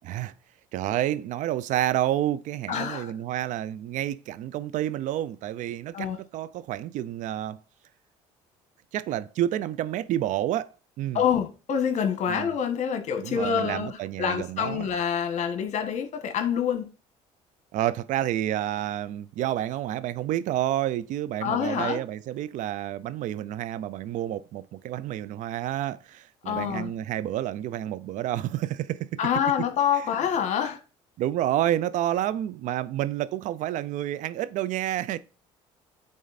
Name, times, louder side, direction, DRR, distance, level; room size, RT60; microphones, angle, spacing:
voice 1, 0.7-7.6 8.9-11.2 12.3-12.5 13.2-14.9 17.7-29.1 31.2-35.2, right 12 dB, 65° right, 0.6 m, -29 dB
voice 2, 2.7-3.1 5.9-6.2 11.1-16.9 21.4-22.0 26.4-26.9 29.2-30.8, left 8 dB, 60° left, 1.4 m, -26 dB
9.4 x 3.8 x 4.1 m
supercardioid pair, 80°, 14 cm